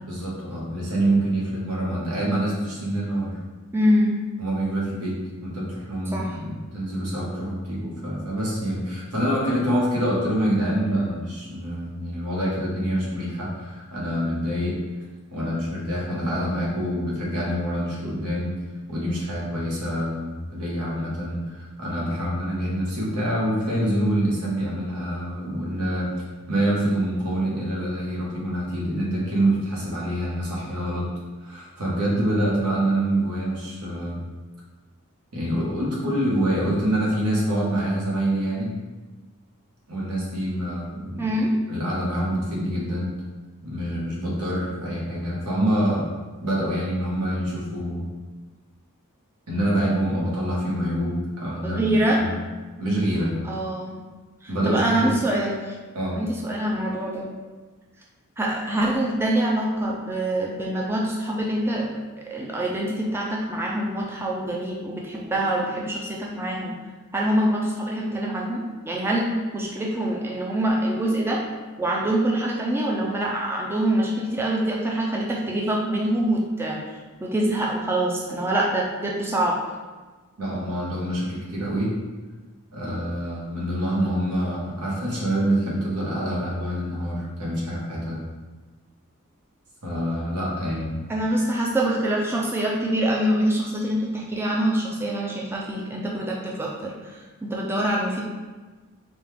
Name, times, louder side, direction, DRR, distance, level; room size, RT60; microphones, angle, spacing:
voice 1, 0.1-3.4 4.4-5.1 5.4-14.8 15.3-18.5 18.9-26.1 26.5-31.0 31.4-34.2 35.3-38.7 39.9-41.3 41.7-43.1 43.6-46.1 46.4-48.1 49.5-52.4 52.8-53.4 54.5-55.2 55.9-56.2 80.4-81.9 82.7-88.2 89.8-91.0, right 1 dB, 90° right, -5 dB, 1.4 m, -26 dB
voice 2, 3.7-4.2 6.1-6.4 41.2-41.5 51.6-52.2 53.4-54.0 54.4-55.7 56.1-57.3 58.4-62.0 62.3-66.7 67.1-71.4 71.8-76.8 77.2-79.6 91.1-98.2, right 1 dB, 10° right, -3 dB, 0.4 m, -25 dB
5.2 x 2.4 x 3.3 m, 1.3 s
head